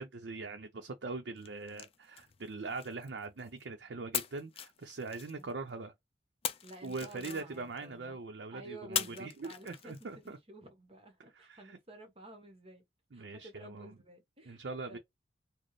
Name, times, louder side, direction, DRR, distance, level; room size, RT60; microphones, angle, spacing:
voice 1, 0.0-5.9 6.8-10.4 11.3-11.8 13.1-13.9 14.5-15.0, right 3 dB, 70° right, 0.6 m, -42 dB
sound 1, 1.4-3.6 4.1-5.7 6.4-7.9 8.9-10.3, left 9 dB, 35° left, 0.4 m, -41 dB
voice 2, 6.6-8.2 8.5-12.8 13.1-15.0, right 1 dB, 35° right, 1.1 m, -51 dB
4.2 x 2.1 x 3.1 m
head